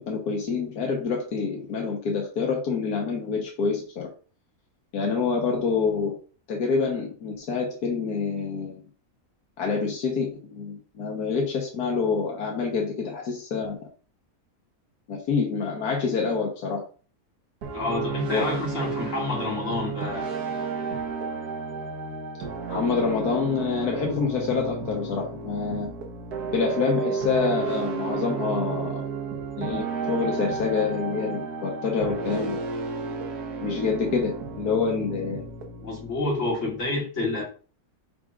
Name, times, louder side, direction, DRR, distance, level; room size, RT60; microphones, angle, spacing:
voice 1, 0.0-4.1 4.9-6.1 6.5-8.8 9.6-13.8 15.1-16.8 18.3-18.6 22.7-25.9 26.5-29.0 29.6-32.6 33.6-35.5, left 5 dB, 85° left, 1.7 m, -27 dB
sound 1, 17.6-36.8, right 4 dB, 90° right, 1.6 m, -32 dB
voice 2, 17.7-20.3 35.8-37.4, left 2 dB, 50° left, 2.8 m, -28 dB
5.9 x 3.7 x 4.8 m
omnidirectional pair, 1.6 m